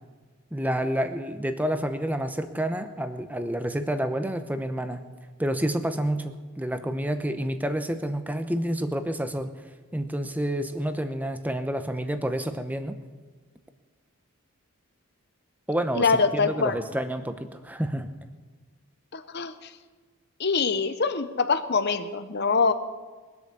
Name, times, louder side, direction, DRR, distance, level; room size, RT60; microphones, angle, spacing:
voice 1, 0.5-5.0 5.4-9.5 9.9-13.0 15.7-18.1, right 1 dB, 5° right, 9 dB, 0.8 m, -29 dB
voice 2, 16.0-16.8 19.1-19.7 20.4-22.7, left 4 dB, 50° left, 10 dB, 0.8 m, -24 dB
22.0 x 8.3 x 6.9 m, 1.4 s
head